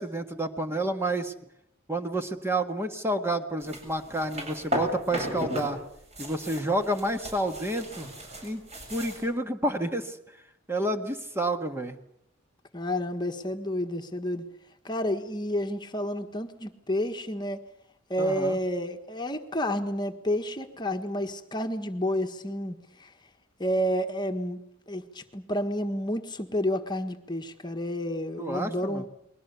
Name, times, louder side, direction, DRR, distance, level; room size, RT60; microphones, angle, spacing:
voice 1, 0.0-1.3 1.9-5.8 6.2-8.1 8.4-8.6 8.9-10.2 10.7-12.0 18.2-18.6 28.4-29.0, right 1 dB, 15° right, 6 dB, 1.6 m, -29 dB
Going through a domestic drawer, 3.6-5.7 6.0-9.3, equal, 35° right, 7.4 m, -35 dB
voice 2, 12.7-14.4 14.8-17.6 18.1-23.1 23.6-24.6 24.9-29.1, equal, 20° left, 5 dB, 1.5 m, -30 dB
30.0 x 22.0 x 6.9 m, 0.74 s
head